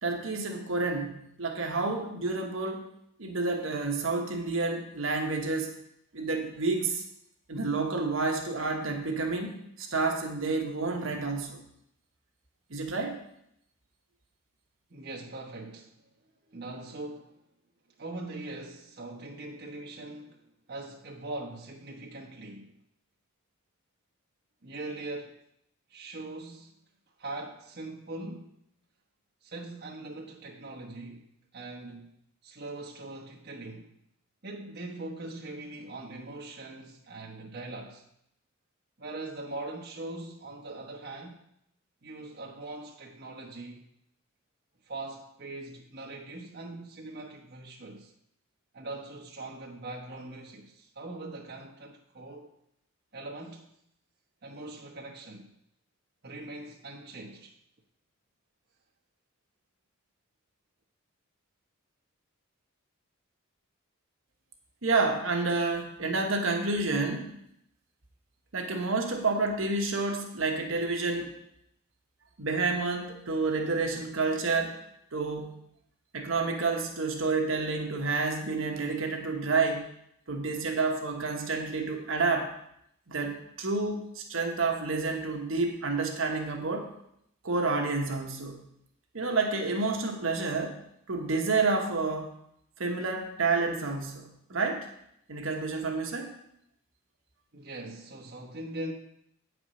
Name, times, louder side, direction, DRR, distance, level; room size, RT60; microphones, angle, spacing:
voice 1, 0.0-2.9 3.2-5.7 6.1-7.0 7.5-11.6 12.7-13.2 64.8-67.3 68.5-71.3 72.4-74.8 75.1-75.5 76.1-79.9 80.3-82.5 83.1-86.9 87.4-88.6 89.1-90.8 91.1-92.3 92.8-94.9 95.3-96.3, right 3 dB, 70° right, 1.2 m, -29 dB
voice 2, 14.9-16.0 16.5-17.4 18.0-22.8 24.6-25.3 25.9-26.7 27.2-28.5 29.4-31.3 31.5-32.1 32.4-33.9 34.4-38.0 39.0-41.4 42.0-43.8 44.8-48.1 48.7-52.5 53.1-53.7 54.4-55.5 56.2-57.6 97.5-98.9, right 2 dB, 50° right, 1.1 m, -41 dB
8.7 x 4.9 x 6.2 m
head